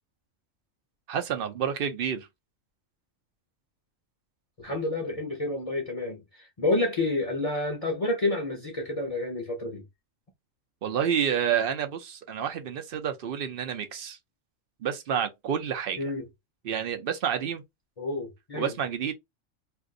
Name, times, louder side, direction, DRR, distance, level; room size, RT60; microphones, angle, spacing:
voice 1, 1.1-2.3 10.8-14.2 14.8-16.1 16.6-17.6 18.6-19.1, right 8 dB, 60° right, 0.7 m, -29 dB
voice 2, 4.6-9.8 16.0-16.3 18.0-18.7, left 2 dB, 35° left, 0.7 m, -29 dB
2.6 x 2.5 x 3.7 m
omnidirectional pair, 1.3 m